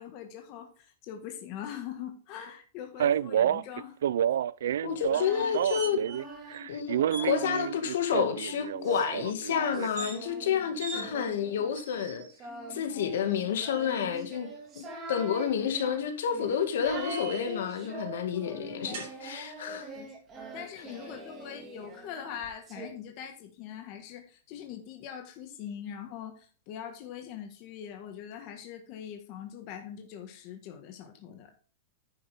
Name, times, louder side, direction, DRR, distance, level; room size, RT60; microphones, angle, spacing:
voice 1, 0.0-4.0 10.9-11.2 18.9-19.0 19.7-20.1 20.5-31.6, left 9 dB, 30° left, 1.6 m, -42 dB
Male speech man speaking, 3.0-6.2 6.5-9.9, right 10 dB, 85° right, 0.4 m, -29 dB
voice 2, 4.8-6.0 6.7-12.2 12.7-19.9, left 8 dB, 70° left, 2.0 m, -30 dB
Singing, 4.8-7.9 8.4-22.9, right 1 dB, 15° right, 2.1 m, -44 dB
sound 1, 5.3-6.2 6.5-6.6 7.0-7.3 9.8-10.2 10.8-11.0 11.7-12.3 13.3-14.1 16.0-17.6 18.9-19.1, right 4 dB, 50° right, 5.6 m, -42 dB
10.0 x 7.8 x 3.6 m
supercardioid pair, 175°, 0 cm